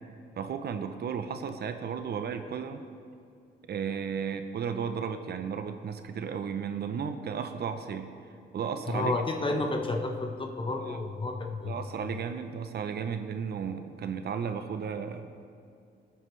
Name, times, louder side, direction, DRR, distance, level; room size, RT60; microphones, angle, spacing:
voice 1, 0.4-2.8 3.7-8.1 8.5-9.1 10.9-11.0 11.6-15.2, right 7 dB, 55° right, 8 dB, 0.7 m, -34 dB
voice 2, 8.9-11.8, left 2 dB, 25° left, 3 dB, 1.1 m, -31 dB
18.5 x 9.4 x 3.3 m, 2.4 s
cardioid pair, 90°, 20 cm